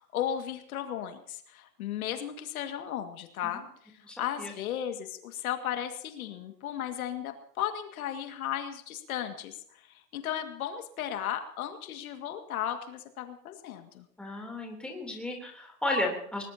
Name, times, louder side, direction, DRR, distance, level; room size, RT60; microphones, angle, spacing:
voice 1, 0.0-14.1, left 10 dB, 60° left, 6 dB, 2.2 m, -35 dB
voice 2, 4.0-4.5 14.2-16.4, left 1 dB, ahead, 0 dB, 3.3 m, -34 dB
21.0 x 20.0 x 2.9 m, 0.66 s
hypercardioid pair, 155°, 48 cm